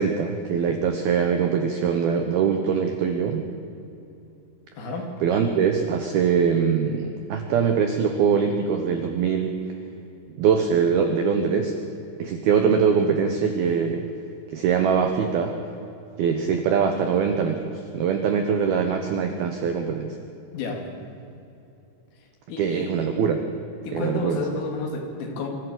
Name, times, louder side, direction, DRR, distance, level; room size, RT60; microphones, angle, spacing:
voice 1, 0.0-3.5 5.2-9.5 10.4-11.8 12.2-14.1 14.5-15.5 16.2-20.2 22.6-23.4 23.9-24.4, right 6 dB, 75° right, 5 dB, 2.3 m, -22 dB
voice 2, 4.8-5.1 20.5-20.9 22.5-23.0 23.8-25.5, left 3 dB, 75° left, 2 dB, 5.3 m, -31 dB
24.0 x 15.5 x 7.9 m, 2.8 s
omnidirectional pair, 5.9 m